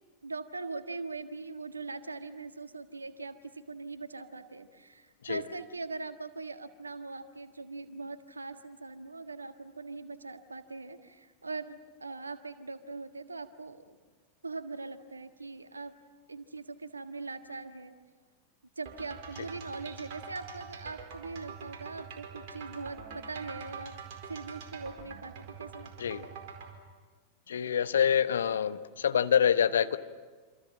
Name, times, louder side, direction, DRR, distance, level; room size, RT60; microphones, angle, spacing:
voice 1, 0.2-14.0 14.4-16.0 16.3-17.9 18.8-24.0 24.2-26.3 27.9-28.0, right 3 dB, 80° right, 9 dB, 1.6 m, -41 dB
sound 1, 18.9-26.7, right 6 dB, 50° right, 4.8 m, -45 dB
voice 2, 27.5-30.0, left 8 dB, 65° left, 12 dB, 1.1 m, -26 dB
28.0 x 26.5 x 7.5 m, 1.4 s
figure-of-eight pair, 90°, 0 cm